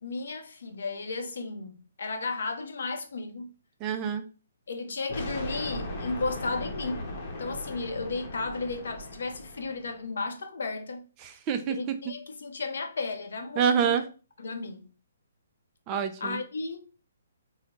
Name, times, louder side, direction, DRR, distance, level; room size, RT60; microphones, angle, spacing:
voice 1, 0.0-3.5 4.7-7.0 7.4-11.0 11.7-14.0 14.4-14.9 16.2-16.8, left 3 dB, 75° left, 0.7 m, -34 dB
voice 2, 3.8-4.2 11.2-11.8 13.6-14.0 15.9-16.4, right 7 dB, 25° right, 0.3 m, -26 dB
sound 1, 5.1-10.0, left 1 dB, 35° left, 0.9 m, -38 dB
3.9 x 2.1 x 2.9 m
hypercardioid pair, 150°, 0 cm